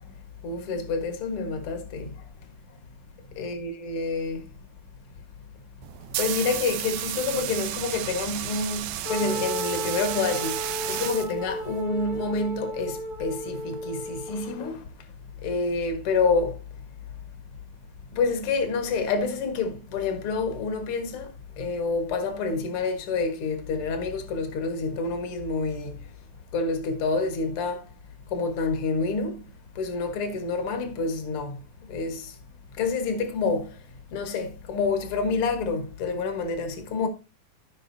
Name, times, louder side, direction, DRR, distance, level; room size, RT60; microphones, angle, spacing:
voice 1, 0.4-2.1 3.4-4.5 6.2-14.8 15.4-16.6 18.1-26.0 26.5-27.8 28.3-29.4 29.8-32.4 32.8-33.8 34.1-37.1, left 4 dB, 50° left, 1.9 m, -28 dB
sound 1, 5.8-11.8, right 13 dB, 80° right, 1.7 m, -33 dB
Wind instrument woodwind instrument, 9.1-14.7, equal, 85° left, 5.2 m, -34 dB
15.5 x 5.5 x 2.7 m
omnidirectional pair, 4.1 m